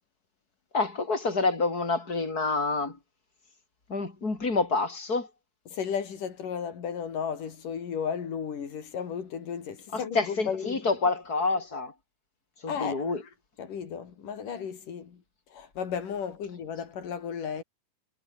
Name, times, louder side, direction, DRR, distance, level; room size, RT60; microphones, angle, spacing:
voice 1, 0.7-3.0 3.9-5.3 9.9-11.9 12.6-13.2, left 3 dB, 25° left, 5.0 m, -28 dB
voice 2, 5.7-10.8 12.7-13.1 13.6-15.2 15.5-17.6, left 7 dB, 90° left, 4.8 m, -34 dB
omnidirectional pair, 3.6 m